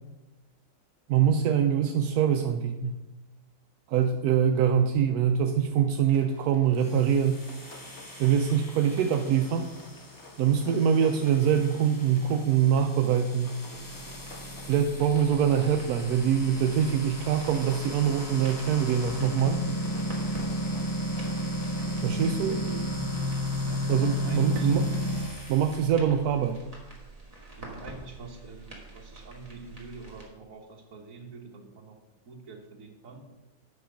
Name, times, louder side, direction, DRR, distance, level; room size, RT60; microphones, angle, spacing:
voice 1, 1.1-3.0 3.9-7.4 8.2-9.7 10.4-13.6 14.7-19.6 22.0-22.6 23.9-24.9 25.5-26.6, right 8 dB, 80° right, 5 dB, 1.1 m, -24 dB
Rain, 6.1-21.9, left 2 dB, 50° left, 1.5 m, -51 dB
sound 1, 6.7-25.9, equal, 15° left, 0.7 m, -34 dB
sound 2, 13.7-30.3, right 3 dB, 25° right, 1.9 m, -48 dB
voice 2, 22.5-22.9 23.6-24.7 25.9-26.0 27.6-32.0 32.2-33.3, right 3 dB, 60° right, 2 dB, 1.7 m, -45 dB
8.7 x 5.8 x 5.0 m, 1.1 s
omnidirectional pair, 1.6 m